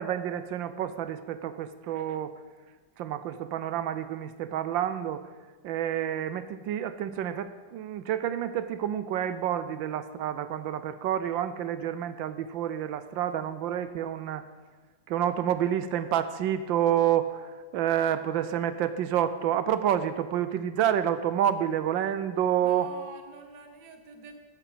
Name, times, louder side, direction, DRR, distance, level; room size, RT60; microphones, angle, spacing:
voice 1, 0.0-2.3 3.0-5.3 5.6-14.5 15.1-22.9, right 10 dB, 75° right, 12 dB, 1.3 m, -29 dB
voice 2, 22.6-24.4, right 4 dB, 60° right, 6 dB, 1.8 m, -46 dB
10.5 x 8.4 x 7.7 m, 1.4 s
omnidirectional pair, 2.2 m